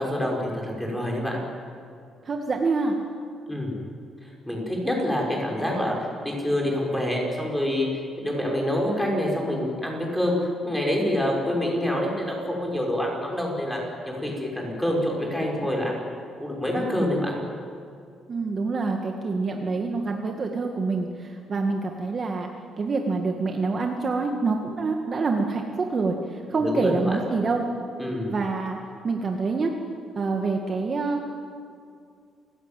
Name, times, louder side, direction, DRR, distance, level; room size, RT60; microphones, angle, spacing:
voice 1, 0.0-1.4 3.5-3.8 4.2-5.9 6.2-7.9 8.2-10.4 10.6-13.8 14.0-16.0 16.4-17.4 26.5-27.2 28.0-28.3, left 1 dB, 5° left, -1 dB, 6.4 m, -26 dB
voice 2, 2.3-3.0 18.3-22.5 22.8-25.6 25.9-27.6 28.3-28.8 29.0-29.7 30.2-31.4, right 3 dB, 35° right, 2 dB, 2.1 m, -26 dB
29.0 x 17.0 x 9.3 m, 2.3 s
cardioid pair, 135°, 0 cm